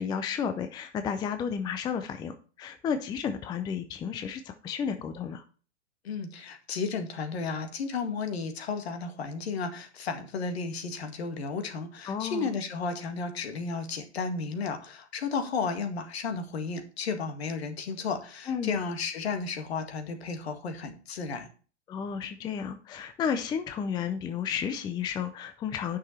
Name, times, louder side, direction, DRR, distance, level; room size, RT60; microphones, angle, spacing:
voice 1, 0.0-5.4 12.1-12.5 18.5-18.8 21.9-26.0, left 7 dB, 10° left, 9 dB, 0.5 m, -32 dB
voice 2, 6.0-21.5, left 4 dB, 65° left, 6 dB, 1.9 m, -33 dB
9.9 x 6.1 x 4.3 m, 0.39 s
figure-of-eight pair, 110°, 34 cm